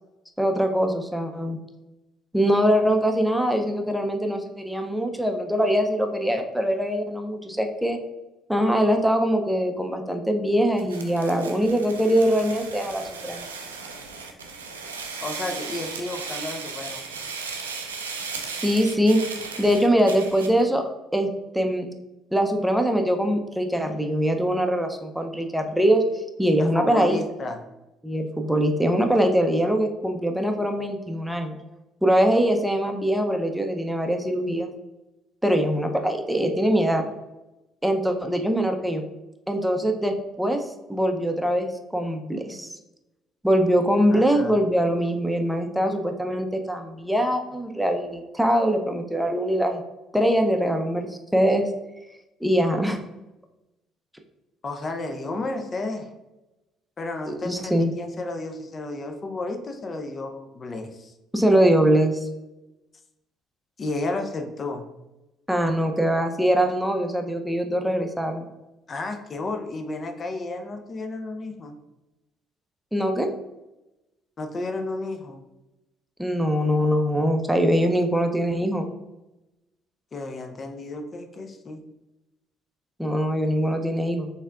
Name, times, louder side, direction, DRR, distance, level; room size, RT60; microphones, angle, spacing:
voice 1, 0.4-1.6 2.3-8.0 8.5-13.4 18.6-19.2 19.6-20.9 21.1-21.3 21.5-21.9 22.3-27.2 28.0-31.6 32.0-34.7 35.4-37.0 37.8-39.0 39.5-40.6 40.9-42.7 43.4-49.8 50.1-51.7 52.4-53.0 57.3-57.9 61.3-62.2 65.5-68.5 72.9-73.3 76.2-78.9 83.0-84.3, equal, ahead, 4 dB, 0.6 m, -22 dB
sound 1, 10.8-20.6, right 5 dB, 90° right, 0.4 m, -36 dB
voice 2, 15.2-17.0 26.6-27.6 44.1-44.6 54.6-56.1 57.0-61.1 63.8-64.9 68.9-71.8 74.4-75.4 80.1-81.8, left 2 dB, 40° left, 5 dB, 0.5 m, -32 dB
4.3 x 3.5 x 2.4 m, 0.98 s
hypercardioid pair, 50°, 0 cm